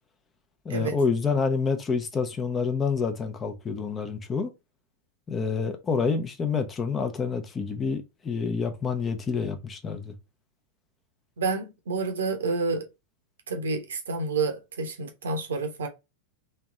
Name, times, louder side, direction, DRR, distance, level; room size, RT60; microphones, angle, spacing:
voice 1, 0.6-4.5 5.3-10.1, left 5 dB, 20° left, 0.8 m, -28 dB
voice 2, 11.4-12.9 13.5-15.9, right 4 dB, 65° right, 1.0 m, -29 dB
3.3 x 3.0 x 3.7 m
figure-of-eight pair, 90°, 0 cm